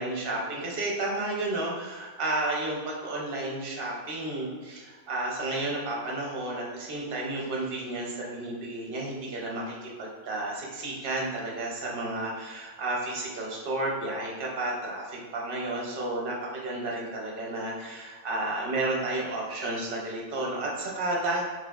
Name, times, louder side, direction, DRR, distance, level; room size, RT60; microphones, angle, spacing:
voice 1, 0.0-21.4, right 2 dB, 55° right, -3 dB, 0.8 m, -32 dB
4.6 x 2.3 x 2.3 m, 1.4 s
omnidirectional pair, 1.3 m